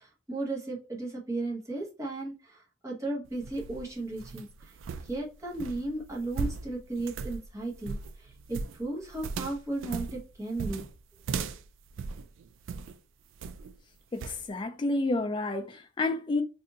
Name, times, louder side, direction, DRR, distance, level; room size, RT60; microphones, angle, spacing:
voice 1, 0.0-4.8 5.0-10.9 11.3-11.5, right 2 dB, 15° right, 0.9 m, -35 dB
sound 1, 3.2-13.0 13.4-13.8 14.2-14.4, right 5 dB, 75° right, 0.3 m, -38 dB
voice 2, 14.1-16.4, left 2 dB, 25° left, 0.3 m, -30 dB
2.7 x 2.6 x 3.8 m
head